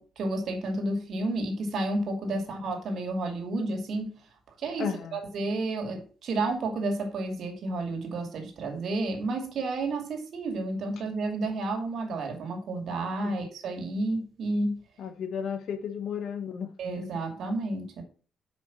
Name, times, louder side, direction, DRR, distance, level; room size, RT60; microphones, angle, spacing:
voice 1, 0.0-4.1 4.6-14.8 16.8-18.0, right 2 dB, 60° right, 2.5 m, -31 dB
voice 2, 4.8-5.2 13.2-13.4 15.0-17.1, left 7 dB, 70° left, 1.1 m, -34 dB
5.8 x 5.3 x 6.0 m
cardioid pair, 90°, 0 cm